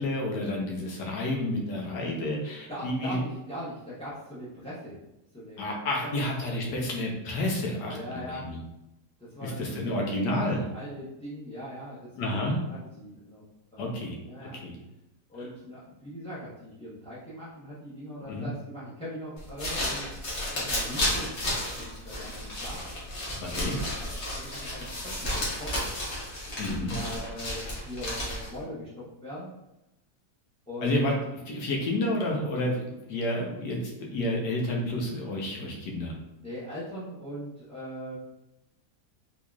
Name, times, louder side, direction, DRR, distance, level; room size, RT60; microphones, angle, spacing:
voice 1, 0.0-3.3 5.6-8.6 9.4-10.7 12.2-12.6 13.8-14.1 14.6-14.7 18.3-18.5 23.4-23.8 26.6-26.9 30.8-31.1 31.4-32.8 33.1-36.1, left 1 dB, 85° left, -1 dB, 1.5 m, -30 dB
voice 2, 2.7-5.0 5.3-5.7 6.5-6.7 7.9-8.5 9.2-10.1 10.7-13.4 13.7-14.0 14.3-14.6 15.3-20.1 20.5-22.8 23.7-25.8 26.4-29.5 30.7-30.9 32.2-32.4 36.4-38.1, equal, 5° left, -11 dB, 0.5 m, -41 dB
sound 1, 19.4-28.6, left 1 dB, 45° left, 1.2 m, -32 dB
4.0 x 3.0 x 2.4 m, 0.92 s
omnidirectional pair, 1.8 m